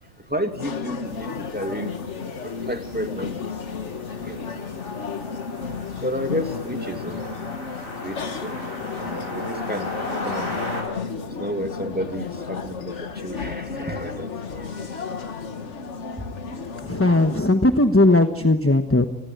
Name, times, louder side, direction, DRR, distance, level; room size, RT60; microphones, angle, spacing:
voice 1, 0.3-1.9 2.4-3.3 4.2-4.4 6.0-7.2 8.0-8.6 9.0-10.6 11.2-15.6 16.2-16.3, equal, 5° right, 5 dB, 2.6 m, -32 dB
sound 1, 0.6-17.4, left 5 dB, 60° left, 1.7 m, -33 dB
sound 2, 1.1-10.8, left 1 dB, 75° left, 7.1 m, -37 dB
voice 2, 16.8-19.1, left 2 dB, 10° left, 8 dB, 1.1 m, -18 dB
29.0 x 20.0 x 9.3 m, 0.91 s
omnidirectional pair, 1.4 m